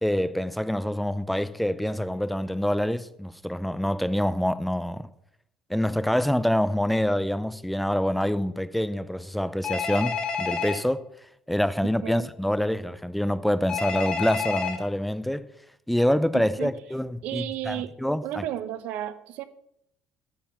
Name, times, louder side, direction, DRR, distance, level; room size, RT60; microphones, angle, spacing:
voice 1, 0.0-5.1 5.7-11.0 11.5-15.5 15.9-18.4, equal, ahead, 0.4 m, -26 dB
Telephone, 9.6-10.8 13.7-14.8, left 5 dB, 30° left, 1.5 m, -29 dB
voice 2, 16.3-16.7 17.2-17.9 18.2-19.5, right 12 dB, 65° right, 0.8 m, -33 dB
8.8 x 5.7 x 7.2 m
cardioid pair, 155°, 3 cm